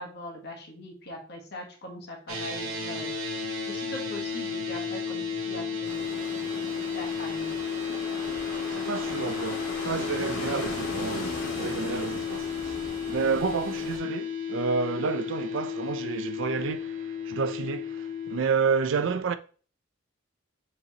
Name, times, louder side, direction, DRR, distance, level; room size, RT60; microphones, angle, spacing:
voice 1, 0.0-3.1 3.7-6.4 6.7-7.5, left 1 dB, 50° left, 1.0 m, -41 dB
sound 1, 2.3-18.4, left 6 dB, 80° right, 0.9 m, -33 dB
sound 2, 5.8-14.0, left 1 dB, 85° left, 1.6 m, -38 dB
voice 2, 8.7-19.3, right 5 dB, 60° right, 0.4 m, -30 dB
6.6 x 2.9 x 2.8 m
head